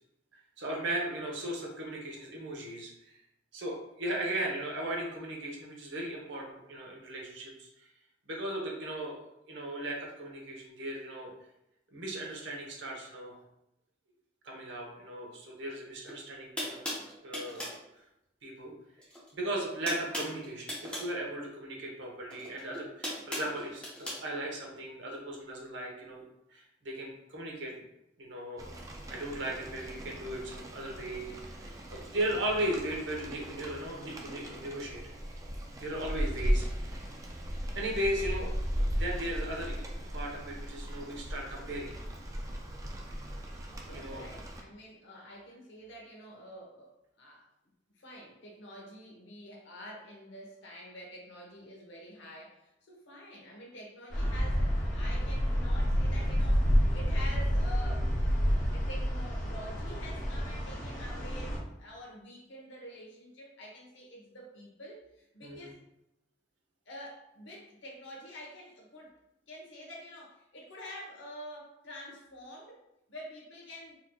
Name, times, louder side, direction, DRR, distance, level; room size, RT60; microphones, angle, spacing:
voice 1, 0.6-3.1 3.5-7.7 8.3-9.2 9.5-11.3 11.9-13.4 14.4-16.8 17.2-17.7 18.4-18.7 19.3-26.2 26.5-27.7 28.2-28.7 29.1-31.5 31.9-35.0 35.8-37.1 37.7-38.7 38.9-41.9 43.9-44.3 65.4-65.7, right 1 dB, 65° right, -1 dB, 0.9 m, -37 dB
sound 1, 16.0-16.1 16.6-17.8 19.0-19.3 19.5-21.1 22.3-24.2, equal, 5° left, 0.8 m, -38 dB
Rain, 28.6-44.6, equal, 15° right, 0.3 m, -37 dB
voice 2, 43.8-46.9 47.2-47.5 48.0-58.1 58.7-65.8 66.9-69.1 69.5-72.8 73.1-74.0, equal, 70° left, -1 dB, 0.9 m, -47 dB
sound 2, 54.1-61.6, equal, 40° left, 0.7 m, -29 dB
4.2 x 2.8 x 2.2 m, 0.87 s
head